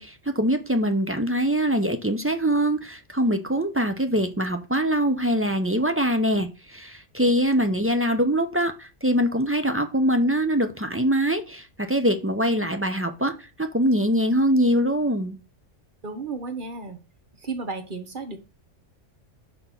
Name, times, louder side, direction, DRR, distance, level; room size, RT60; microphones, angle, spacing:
voice 1, 0.0-15.4, equal, 15° right, 0.4 m, -23 dB
voice 2, 16.0-17.0 17.3-18.4, right 4 dB, 45° right, 1.1 m, -33 dB
5.2 x 4.3 x 5.9 m
omnidirectional pair, 1.3 m